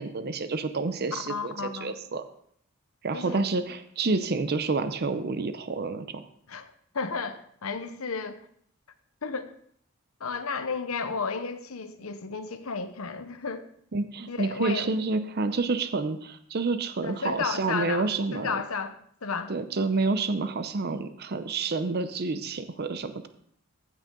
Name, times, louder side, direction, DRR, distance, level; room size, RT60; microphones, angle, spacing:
voice 1, 0.0-1.5 1.8-2.2 3.0-6.2 13.9-18.5 19.5-23.3, right 3 dB, 50° right, 0.6 m, -29 dB
voice 2, 1.1-2.0 3.1-3.5 6.5-8.4 9.2-9.5 10.2-13.6 14.3-14.9 17.0-19.5, left 5 dB, 75° left, 0.9 m, -33 dB
15.5 x 6.3 x 3.8 m
head